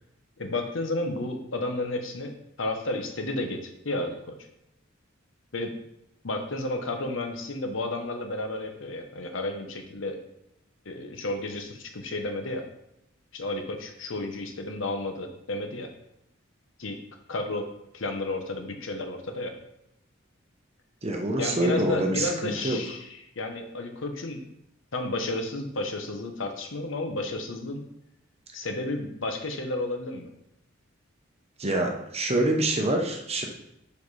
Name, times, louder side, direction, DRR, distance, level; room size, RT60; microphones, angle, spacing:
voice 1, 0.4-4.3 5.5-5.7 6.2-10.2 10.8-12.7 13.3-15.9 16.8-17.0 17.3-17.7 17.9-19.5 21.4-24.4 24.9-27.9 28.5-30.3, left 2 dB, 70° left, 5 dB, 1.0 m, -32 dB
voice 2, 21.0-22.8 31.6-33.5, right 1 dB, 30° right, 2 dB, 0.9 m, -26 dB
5.2 x 4.6 x 4.8 m, 0.81 s
head